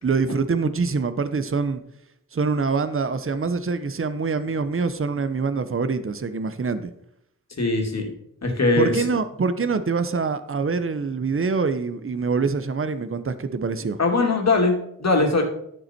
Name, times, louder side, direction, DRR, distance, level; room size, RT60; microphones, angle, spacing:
voice 1, 0.0-1.8 2.3-6.9 8.8-14.0, right 4 dB, 40° right, 11 dB, 0.9 m, -25 dB
voice 2, 7.6-8.1 8.4-9.1 14.0-15.4, left 3 dB, 50° left, 2 dB, 2.5 m, -21 dB
12.0 x 7.4 x 4.5 m, 0.74 s
wide cardioid pair, 75°, 34 cm